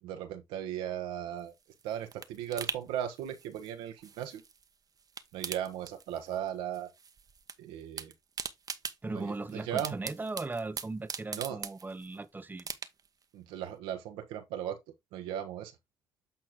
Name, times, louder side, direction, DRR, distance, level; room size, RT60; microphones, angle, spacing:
voice 1, 0.0-1.5 1.8-4.4 5.3-6.9 7.6-8.1 9.1-10.0 11.3-11.6 13.3-14.8 15.1-15.8, right 10 dB, 85° right, 1.3 m, -37 dB
sound 1, 1.4-4.7 5.0-6.5 6.7-7.6 7.8-12.2 12.6-13.2 13.6-13.7, right 6 dB, 45° right, 1.1 m, -42 dB
voice 2, 9.0-12.7, right 3 dB, 20° right, 0.9 m, -38 dB
8.8 x 4.3 x 3.7 m
supercardioid pair, 55°, 9 cm